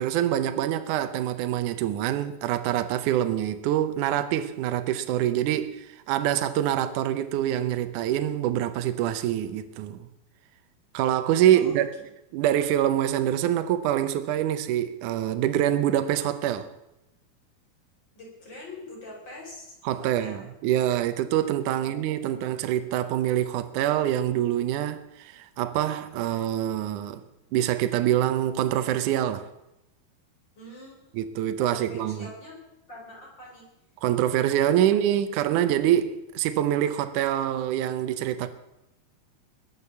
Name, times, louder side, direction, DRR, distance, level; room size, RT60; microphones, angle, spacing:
voice 1, 0.0-10.1 10.9-11.9 12.3-16.7 19.9-27.2 27.5-29.5 31.2-32.3 34.0-38.5, right 11 dB, 75° right, 1.9 m, -25 dB
voice 2, 11.5-12.1 18.1-20.5 21.7-22.4 30.6-31.2 31.6-32.6 32.9-33.6 34.8-34.9, left 1 dB, 30° left, 4.8 m, -44 dB
21.0 x 8.6 x 7.1 m
omnidirectional pair, 4.6 m